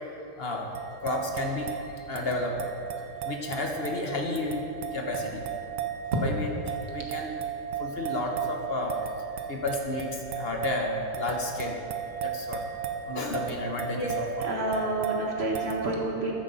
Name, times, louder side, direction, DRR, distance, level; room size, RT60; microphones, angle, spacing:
voice 1, 0.4-0.7 1.0-1.7 2.0-2.7 3.2-5.4 6.2-7.3 7.8-9.0 9.5-11.8 12.2-12.6 13.1-14.3 14.7-14.8, left 2 dB, 50° left, 1 dB, 0.7 m, -32 dB
sound 1, 0.7-15.7, right 8 dB, 75° right, 1.6 m, -36 dB
voice 2, 14.4-16.3, right 2 dB, 30° right, -2 dB, 1.5 m, -29 dB
13.5 x 10.0 x 4.1 m, 2.9 s
omnidirectional pair, 2.4 m